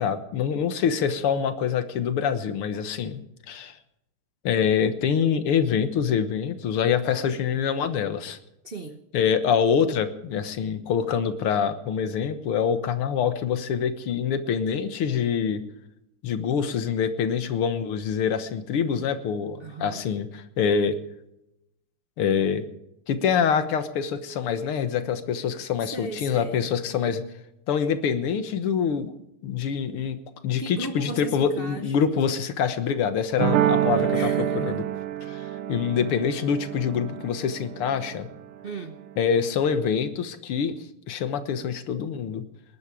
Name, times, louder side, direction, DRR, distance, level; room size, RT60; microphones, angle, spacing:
voice 1, 0.0-3.2 3.5-3.8 4.4-8.4 9.1-15.6 16.2-21.0 22.2-22.6 23.1-27.2 27.7-29.1 29.4-30.2 30.4-34.2 34.6-34.8 35.2-38.3 39.2-40.8 41.1-42.5, left 7 dB, 85° left, 10 dB, 2.1 m, -25 dB
voice 2, 8.6-9.0 19.6-20.0 25.8-26.7 30.6-32.0 34.1-34.8 38.6-39.0, right 2 dB, 55° right, 5 dB, 0.6 m, -36 dB
sound 1, 33.4-38.4, right 11 dB, 80° right, 1.7 m, -27 dB
19.5 x 11.5 x 4.9 m, 0.84 s
omnidirectional pair, 2.4 m